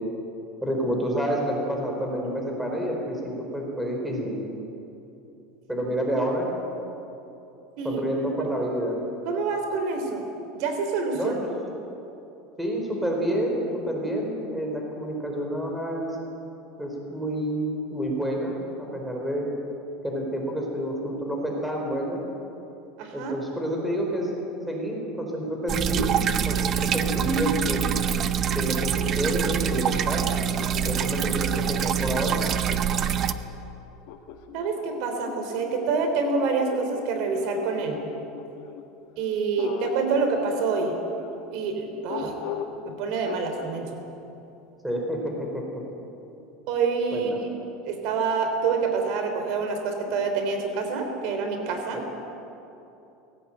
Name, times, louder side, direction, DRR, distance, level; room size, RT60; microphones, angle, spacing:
voice 1, 0.6-4.4 5.7-6.5 7.8-9.0 11.1-11.5 12.6-16.2 16.8-19.5 20.0-22.2 23.1-24.3 24.7-26.2 26.4-28.0 28.5-30.3 30.8-32.4 44.8-45.6 47.1-47.5, right 1 dB, 5° right, 0 dB, 4.4 m, -29 dB
voice 2, 9.2-10.2 10.5-11.3 23.0-23.4 34.5-38.0 39.2-40.9 41.5-42.3 42.8-44.0 46.7-47.3 47.8-52.0, right 4 dB, 60° right, 5 dB, 3.3 m, -27 dB
sound 1, 25.7-33.3, right 8 dB, 35° right, 0.8 m, -25 dB
sound 2, 27.0-29.4 30.2-33.2 34.1-38.8 39.6-41.3 42.1-42.8 43.3-43.7, left 9 dB, 65° left, 1.9 m, -40 dB
19.5 x 17.0 x 9.1 m, 2.8 s
supercardioid pair, 150°, 0 cm